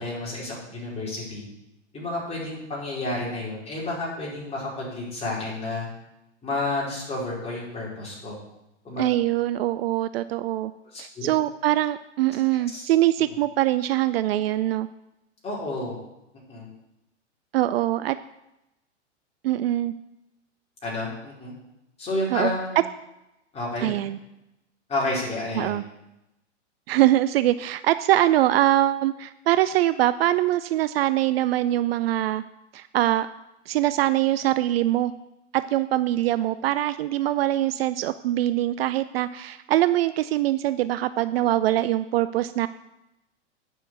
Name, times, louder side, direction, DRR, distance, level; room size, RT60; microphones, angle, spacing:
voice 1, 0.0-1.4 1.9-5.9 6.4-8.4 8.8-9.0 10.9-11.3 12.5-12.8 15.4-16.0 16.5-16.7 20.8-21.5 22.0-22.8 23.5-23.9 24.9-25.7, left 2 dB, 15° left, -6 dB, 4.8 m, -30 dB
voice 2, 9.0-10.7 11.0-14.9 17.5-18.2 19.4-19.9 22.3-22.5 23.8-24.2 25.5-25.8 26.9-32.4 32.7-33.3 33.7-35.1 35.5-42.7, right 14 dB, 55° right, 14 dB, 0.5 m, -23 dB
9.2 x 5.8 x 8.0 m, 0.90 s
hypercardioid pair, 125°, 35 cm